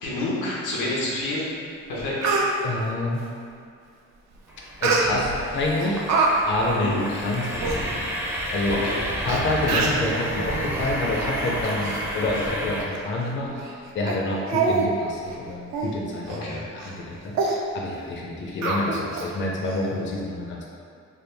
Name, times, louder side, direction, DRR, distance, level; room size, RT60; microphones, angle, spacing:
voice 1, 0.0-1.5 1.9-2.2 6.7-6.9 8.7-9.0 16.3-16.6, left 1 dB, 90° left, -6 dB, 1.0 m, -28 dB
Speech, 1.5-1.6 2.0-2.5 4.8-5.4 5.8-6.3 6.6-6.8 7.3-7.4 7.6-7.8 8.6-8.7 9.3-9.4 9.7-10.1 10.7-10.9 11.4-12.0 12.3-12.5 12.9-13.0 13.6-13.7 14.1-14.2 14.5-14.9 15.2-15.3 15.7-15.9 16.3-16.4 16.8-17.0 17.3-17.6 18.6-19.3 19.7-19.8, right 4 dB, 65° right, 0.5 m, -25 dB
voice 2, 2.6-3.2 4.8-6.0 6.5-8.1 8.5-8.8 9.2-20.7, left 2 dB, 40° left, -2 dB, 0.5 m, -28 dB
sound 1, 4.5-12.9, equal, 10° right, 0.5 m, -30 dB
3.5 x 2.2 x 3.3 m, 2.3 s
cardioid pair, 90°, 30 cm